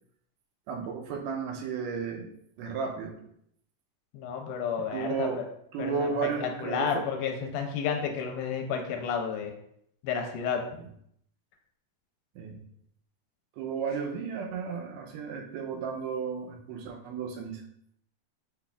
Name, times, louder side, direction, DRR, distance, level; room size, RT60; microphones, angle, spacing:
voice 1, 0.7-2.3 2.6-3.2 4.8-5.4 5.7-7.1 10.8-10.9 12.4-12.6 13.6-17.6, right 5 dB, 80° right, 2 dB, 2.2 m, -33 dB
voice 2, 4.1-5.4 5.8-9.5 10.0-10.7, left 6 dB, 85° left, 3 dB, 2.1 m, -31 dB
5.9 x 3.3 x 2.3 m, 0.71 s
omnidirectional pair, 3.8 m